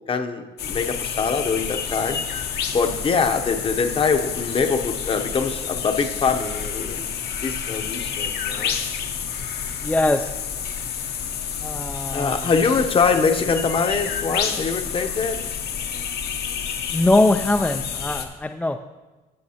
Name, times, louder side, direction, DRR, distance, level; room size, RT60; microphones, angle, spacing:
voice 1, 0.1-2.2 2.7-7.1 7.4-8.8 12.1-15.5, left 5 dB, 30° left, 7 dB, 0.8 m, -23 dB
sound 1, 0.6-18.2, left 7 dB, 70° left, 1.0 m, -29 dB
voice 2, 9.8-10.3 11.6-12.4 16.9-18.8, left 2 dB, 10° left, 5 dB, 0.3 m, -21 dB
14.0 x 7.7 x 2.9 m, 1.2 s
cardioid pair, 110°, 17 cm